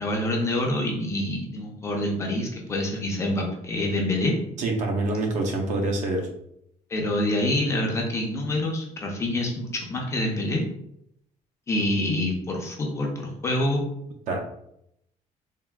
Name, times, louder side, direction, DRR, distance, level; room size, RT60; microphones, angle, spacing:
voice 1, 0.0-4.3 6.9-10.6 11.7-13.8, left 1 dB, 20° left, 0 dB, 0.5 m, -26 dB
voice 2, 4.6-6.3 14.3-14.4, right 2 dB, 60° right, 2 dB, 0.6 m, -26 dB
3.5 x 2.4 x 2.2 m, 0.76 s
cardioid pair, 180°, 14 cm